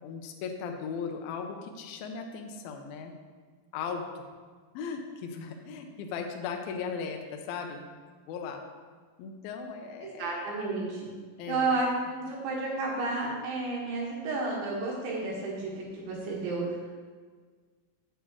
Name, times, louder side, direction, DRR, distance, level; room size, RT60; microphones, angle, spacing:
voice 1, 0.0-3.1 3.7-4.2 4.7-7.9 8.3-8.6 9.2-10.3 11.4-11.8, left 5 dB, 80° left, 3 dB, 2.1 m, -37 dB
voice 2, 10.0-11.1 11.5-11.9 12.1-16.8, right 3 dB, 90° right, -4 dB, 4.0 m, -31 dB
8.5 x 8.3 x 3.0 m, 1.5 s
omnidirectional pair, 5.2 m